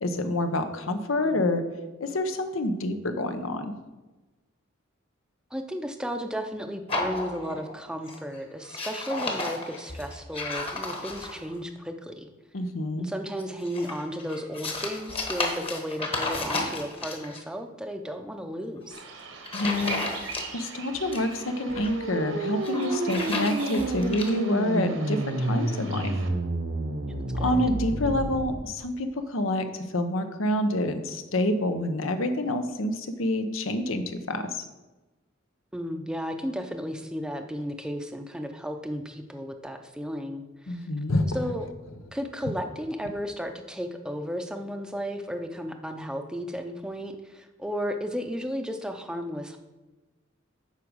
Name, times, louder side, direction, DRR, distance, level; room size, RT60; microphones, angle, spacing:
voice 1, 0.0-1.6 2.0-3.7 12.5-13.1 19.5-20.0 20.5-26.1 27.3-34.7 40.7-41.3, left 1 dB, 80° left, 8 dB, 0.9 m, -27 dB
voice 2, 5.5-12.3 13.0-19.0 23.1-24.0 27.1-27.6 35.7-40.9 41.3-41.7 42.1-49.6, equal, 5° right, 6 dB, 0.6 m, -34 dB
sound 1, 6.9-7.8 8.1-8.3 8.6-11.5 13.4-17.4 18.8-19.0 19.4-20.7 20.9-21.9 22.5-24.3, left 2 dB, 30° left, 1.2 m, -33 dB
Bird vocalization bird call bird song, 18.9-26.3, right 5 dB, 75° right, 1.3 m, -42 dB
sound 2, 21.4-28.5, right 2 dB, 60° right, 0.9 m, -30 dB
8.4 x 5.1 x 6.2 m, 1.1 s
head